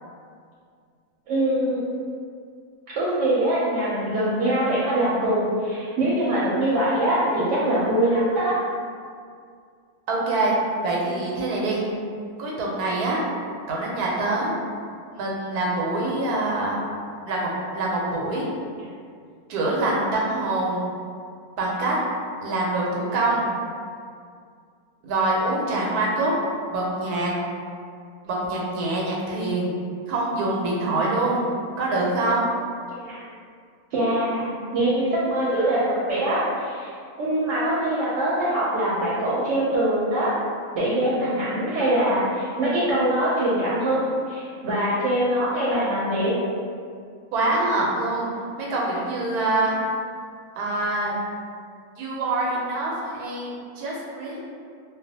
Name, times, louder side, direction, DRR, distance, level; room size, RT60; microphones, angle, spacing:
voice 1, 1.3-1.8 2.9-8.5 33.0-33.2 33.9-40.3 40.7-46.3, right 1 dB, 65° right, -8 dB, 0.8 m, -23 dB
voice 2, 10.1-10.5 10.8-11.8 12.4-13.2 13.7-14.5 15.1-16.8 17.3-18.5 19.5-20.8 21.6-22.0 22.4-23.4 25.0-26.3 26.7-27.3 28.2-29.7 30.1-31.4 31.8-32.5 47.3-48.3 48.6-49.8 50.6-51.2 52.0-54.4, right 2 dB, 90° right, -3 dB, 1.1 m, -25 dB
2.4 x 2.2 x 2.6 m, 2.2 s
omnidirectional pair, 1.6 m